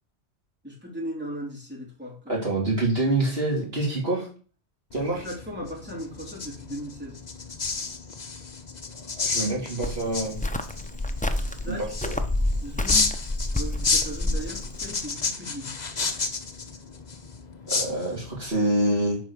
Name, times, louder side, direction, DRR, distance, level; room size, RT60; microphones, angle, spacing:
voice 1, 0.6-2.3 5.1-7.2 11.4-12.0 12.6-13.1 13.5-15.8, equal, 10° right, -2 dB, 3.5 m, -37 dB
voice 2, 2.3-4.3 4.9-5.2 9.0-10.4 11.7-12.1 17.7-19.2, right 2 dB, 55° right, -3 dB, 2.8 m, -26 dB
sound 1, 4.9-18.5, left 4 dB, 40° left, 1.2 m, -31 dB
Cricket, 9.8-15.0, left 1 dB, 10° left, 0.6 m, -29 dB
9.4 x 4.6 x 6.9 m, 0.39 s
omnidirectional pair, 1.2 m